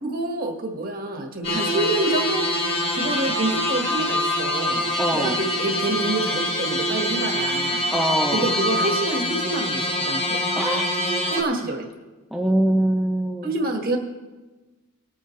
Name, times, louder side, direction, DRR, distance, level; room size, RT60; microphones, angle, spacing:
voice 1, 0.0-2.4 2.9-4.9 5.1-7.8 8.3-10.4 11.3-11.9 13.4-14.0, right 2 dB, 45° right, 2 dB, 1.7 m, -27 dB
sound 1, 1.4-11.4, left 1 dB, 25° left, 1.3 m, -25 dB
voice 2, 5.0-5.4 7.9-8.5 10.6-10.9 12.3-13.5, right 1 dB, ahead, -1 dB, 0.5 m, -23 dB
20.0 x 9.0 x 3.2 m, 1.2 s
head